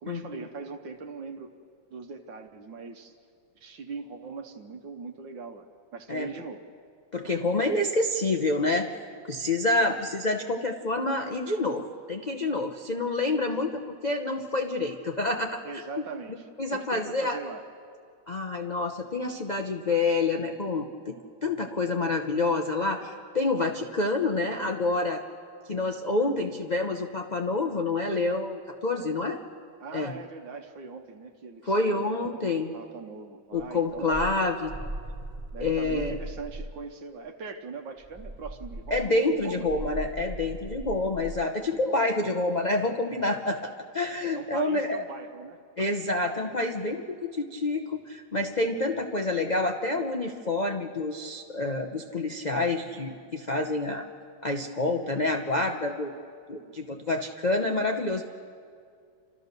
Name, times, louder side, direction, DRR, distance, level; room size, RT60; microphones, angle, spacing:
voice 1, 0.0-1.6 1.9-3.1 3.5-6.7 12.9-13.0 13.5-13.6 15.6-17.6 29.8-34.3 35.5-39.7 41.8-41.9 44.3-45.9, right 4 dB, 70° right, 4 dB, 1.6 m, -41 dB
voice 2, 7.1-8.9 9.3-15.8 16.6-17.4 18.3-21.1 21.4-25.2 25.7-29.4 29.9-30.1 31.7-32.7 33.5-34.7 35.6-36.1 38.9-45.0 45.8-54.1 54.4-56.1 56.5-58.2, left 2 dB, 75° left, 4 dB, 0.4 m, -28 dB
sound 1, 33.6-36.8 38.0-41.5, right 1 dB, 25° right, 1.2 m, -39 dB
29.5 x 13.5 x 6.7 m, 2.3 s
omnidirectional pair, 2.2 m